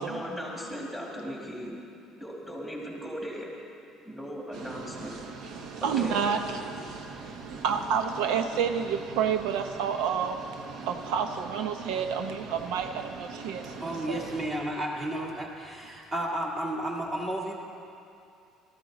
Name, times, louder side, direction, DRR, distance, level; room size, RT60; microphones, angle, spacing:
voice 1, 0.0-1.7 2.2-3.5 4.1-5.1 5.8-6.2, equal, 5° right, -3 dB, 2.1 m, -37 dB
sound 1, 4.5-14.5, right 4 dB, 55° right, 1.1 m, -42 dB
voice 2, 5.6-6.9 7.5-14.2, right 7 dB, 80° right, 7 dB, 0.7 m, -30 dB
voice 3, 13.8-17.5, right 1 dB, 20° right, -1 dB, 1.8 m, -32 dB
17.5 x 13.5 x 4.1 m, 2.6 s
cardioid pair, 160°, 0 cm